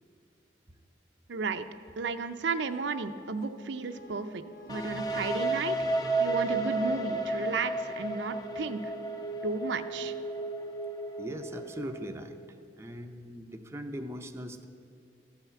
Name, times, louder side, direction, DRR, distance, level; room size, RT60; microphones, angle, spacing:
voice 1, 1.3-1.7 2.0-5.8 6.2-8.9 9.4-10.1, right 4 dB, 70° right, 9 dB, 0.5 m, -33 dB
sound 1, 2.1-7.4, left 1 dB, 50° left, 2.1 m, -52 dB
sound 2, 4.7-12.4, right 2 dB, 20° left, 0.7 m, -33 dB
voice 2, 11.2-12.4 12.8-14.7, equal, 15° right, 5 dB, 0.5 m, -40 dB
12.5 x 5.7 x 8.1 m, 2.5 s
head